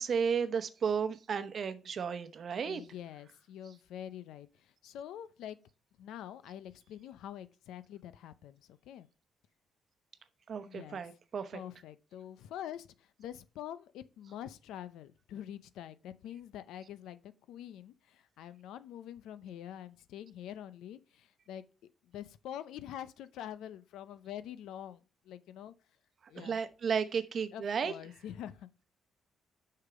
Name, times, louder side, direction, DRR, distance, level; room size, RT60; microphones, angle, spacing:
voice 1, 0.0-2.8 10.5-11.6 26.4-27.9, right 6 dB, 50° right, 0.9 m, -33 dB
voice 2, 2.6-5.6 6.0-9.1 10.7-11.0 11.5-21.6 22.0-25.7 26.3-26.6 27.5-28.8, left 10 dB, 85° left, 0.6 m, -46 dB
6.6 x 5.8 x 4.9 m
cardioid pair, 90°, 0 cm